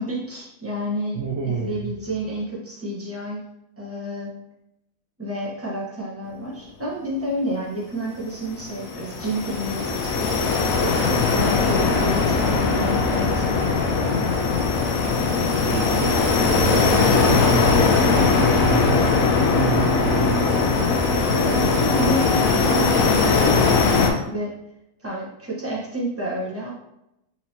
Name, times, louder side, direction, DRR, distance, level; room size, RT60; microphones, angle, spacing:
voice 1, 0.0-3.4 3.8-4.3 5.2-10.5 10.8-14.2 21.3-24.5 25.0-26.7, right 1 dB, 10° right, -5 dB, 0.8 m, -30 dB
voice 2, 1.1-1.9 15.6-20.7, right 6 dB, 65° right, -1 dB, 0.6 m, -29 dB
sound 1, 8.4-24.1, left 4 dB, 75° left, 1.0 m, -20 dB
4.3 x 2.8 x 2.7 m, 0.86 s
omnidirectional pair, 1.5 m